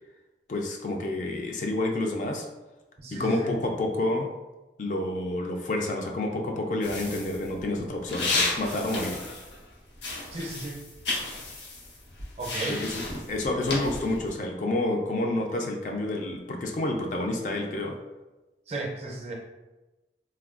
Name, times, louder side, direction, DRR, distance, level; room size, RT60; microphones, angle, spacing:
voice 1, 0.5-2.5 3.1-4.3 4.8-9.4 12.7-18.0, left 2 dB, 45° left, 2 dB, 0.3 m, -29 dB
voice 2, 3.0-3.5 10.3-10.8 12.4-12.8 18.7-19.3, right 2 dB, 35° right, -1 dB, 0.4 m, -34 dB
sound 1, 6.8-9.7 10.0-14.3, left 3 dB, 90° left, 0.6 m, -33 dB
3.3 x 2.2 x 2.3 m, 1.1 s
head